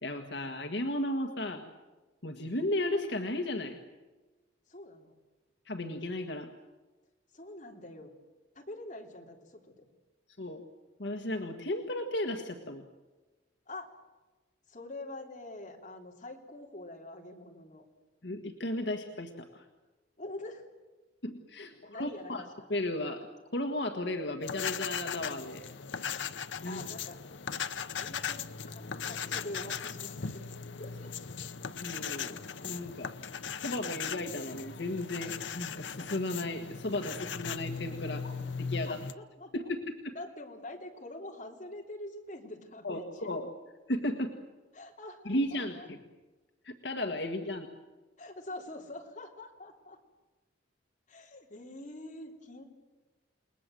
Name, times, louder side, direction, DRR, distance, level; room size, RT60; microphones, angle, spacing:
voice 1, 0.0-1.7 2.2-3.8 5.6-6.5 10.4-10.6 11.0-12.8 18.2-19.7 21.2-25.6 26.6-26.8 31.8-33.1 33.6-38.2 38.7-39.0 39.5-40.1 42.8-43.5 43.9-44.4 45.2-46.0 46.6-47.7, left 1 dB, 70° left, 4 dB, 1.6 m, -35 dB
voice 2, 4.7-5.1 7.3-8.1 8.5-9.8 13.7-13.9 14.7-17.8 20.2-20.6 21.7-22.5 26.6-27.2 27.9-30.5 30.8-31.1 38.2-38.3 38.9-39.5 40.1-43.3 44.7-45.9 47.5-47.6 48.2-50.0 51.1-52.6, left 2 dB, 40° left, 0 dB, 3.4 m, -45 dB
sound 1, 24.4-39.1, left 6 dB, 85° left, 0.8 m, -38 dB
29.0 x 20.0 x 7.8 m, 1.2 s
head